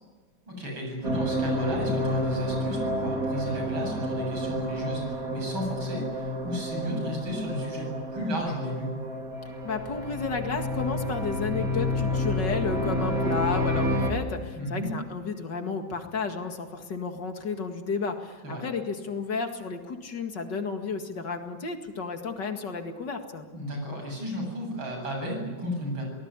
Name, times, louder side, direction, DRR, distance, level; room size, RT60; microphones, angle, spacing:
voice 1, 0.5-8.9 14.6-14.9 18.4-18.6 23.5-26.0, equal, 85° right, 2 dB, 8.6 m, -33 dB
sound 1, 1.0-14.1, left 1 dB, 45° right, 3.1 m, -29 dB
voice 2, 9.6-23.4, left 4 dB, 60° left, 5 dB, 2.7 m, -32 dB
24.5 x 19.0 x 9.8 m, 1.3 s
omnidirectional pair, 2.2 m